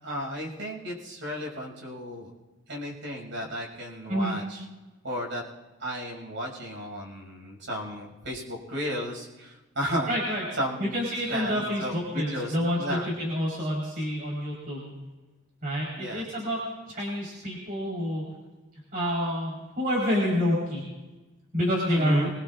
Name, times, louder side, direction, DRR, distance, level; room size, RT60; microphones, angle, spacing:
voice 1, 0.0-2.3 2.7-4.6 5.0-5.4 5.8-10.2 10.6-11.0 11.3-13.1 15.9-16.2 21.9-22.3, equal, 65° right, 0 dB, 6.2 m, -34 dB
voice 2, 10.1-10.4 10.8-15.0 15.6-16.6 16.9-18.2 18.9-20.8 21.5-22.3, equal, 45° right, -5 dB, 4.1 m, -28 dB
24.0 x 22.0 x 2.5 m, 1.2 s
head